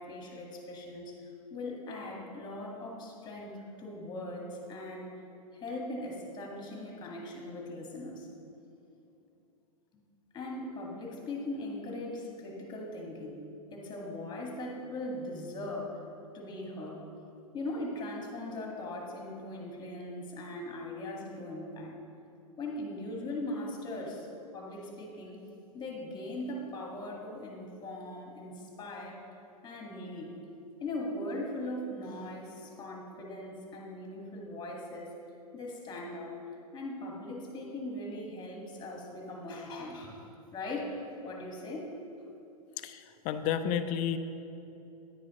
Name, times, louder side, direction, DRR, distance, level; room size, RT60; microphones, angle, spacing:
voice 1, 0.0-5.2 5.5-8.3 10.3-13.4 13.7-16.0 16.3-17.1 17.5-22.0 22.6-24.3 24.5-25.4 25.7-29.2 29.6-30.3 30.8-35.2 35.5-36.4 36.7-40.2 40.5-41.9, left 1 dB, 20° left, 0 dB, 1.7 m, -40 dB
voice 2, 42.8-44.2, left 9 dB, 40° left, 10 dB, 0.5 m, -31 dB
9.8 x 9.6 x 3.0 m, 2.9 s
hypercardioid pair, 110°, 20 cm